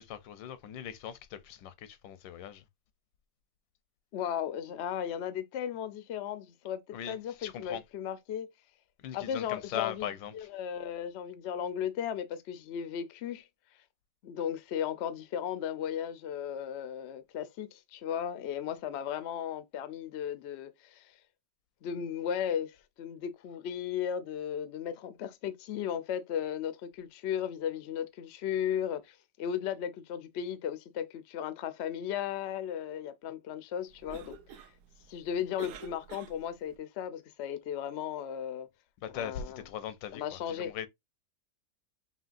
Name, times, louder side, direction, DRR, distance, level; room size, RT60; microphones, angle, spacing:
voice 1, 0.0-2.6 6.9-7.8 9.0-10.5 39.0-40.9, left 9 dB, 90° left, 1.4 m, -40 dB
voice 2, 4.1-8.5 9.1-10.1 10.3-13.5 14.2-21.2 21.8-34.4 35.1-38.7 39.1-39.6 40.1-40.7, left 9 dB, 75° left, 0.6 m, -36 dB
Cough, 33.9-36.8, right 7 dB, 65° right, 0.9 m, -49 dB
5.4 x 2.9 x 2.5 m
omnidirectional pair, 1.9 m